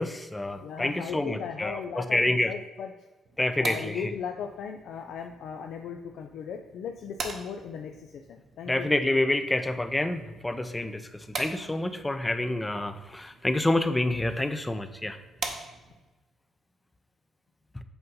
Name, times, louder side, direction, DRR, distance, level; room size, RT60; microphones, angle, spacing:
voice 1, 0.0-2.5 3.4-4.1 8.7-15.2, left 1 dB, 15° left, 10 dB, 0.5 m, -28 dB
voice 2, 0.6-2.9 3.6-8.9, left 7 dB, 75° left, 4 dB, 0.4 m, -37 dB
sound 1, 3.2-16.1, right 4 dB, 55° right, 0.8 m, -43 dB
7.9 x 2.7 x 5.4 m, 1.1 s
cardioid pair, 90°, 0 cm